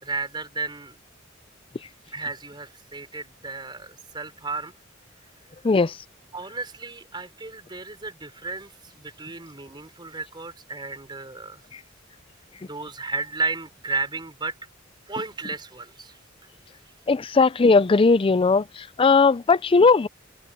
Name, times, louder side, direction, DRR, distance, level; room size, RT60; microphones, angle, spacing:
voice 1, 0.0-1.0 2.1-4.7 6.3-11.6 12.6-14.5 15.1-16.2, right 3 dB, 25° right, 4.5 m, -33 dB
voice 2, 17.1-20.1, left 4 dB, 25° left, 0.4 m, -18 dB
head